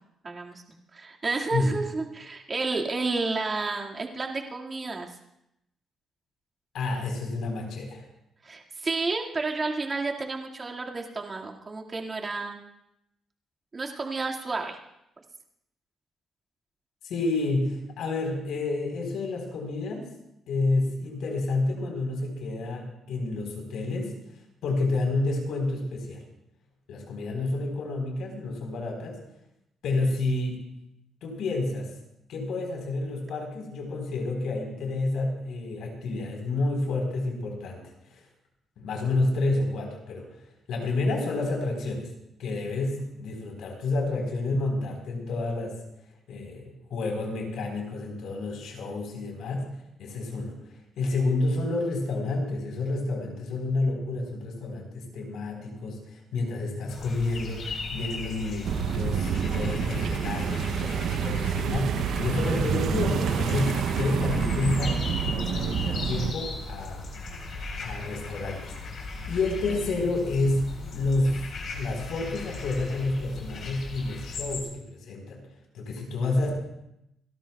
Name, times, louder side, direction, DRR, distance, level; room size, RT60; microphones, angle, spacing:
voice 1, 0.2-0.6 0.9-5.1 8.4-12.6 13.7-14.8 59.6-60.1, right 3 dB, 35° right, 1 dB, 1.9 m, -31 dB
voice 2, 6.7-8.0 17.0-20.1 20.5-24.1 24.6-26.2 26.9-29.2 29.8-30.7 31.2-31.9 32.3-37.8 38.1-38.2 38.8-40.3 40.7-42.1 42.4-45.8 46.3-49.7 50.0-50.5 51.0-67.1 67.8-69.0 69.3-71.4 71.7-75.4 75.7-76.5, left 2 dB, 80° left, 1 dB, 4.0 m, -29 dB
sound 1, 56.9-74.6, left 3 dB, 60° left, 4.0 m, -37 dB
sound 2, 58.6-66.3, right 8 dB, 70° right, 0.6 m, -28 dB
28.5 x 13.0 x 2.3 m, 0.82 s
cardioid pair, 90°, 0 cm